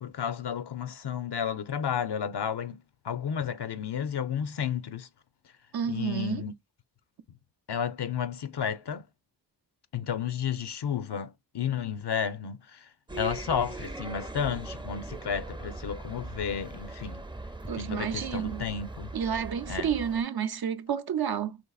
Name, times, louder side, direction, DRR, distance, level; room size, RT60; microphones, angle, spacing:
voice 1, 0.0-2.8 3.0-5.1 5.8-6.5 7.7-9.0 9.9-12.9 13.1-17.2 17.8-19.1 19.7-19.9, left 8 dB, 75° left, 0.6 m, -32 dB
voice 2, 5.7-6.5 17.7-18.7 19.1-21.6, right 8 dB, 65° right, 0.5 m, -30 dB
sound 1, 13.1-20.2, right 2 dB, 10° right, 0.5 m, -40 dB
4.4 x 3.1 x 2.3 m
wide cardioid pair, 50°, 41 cm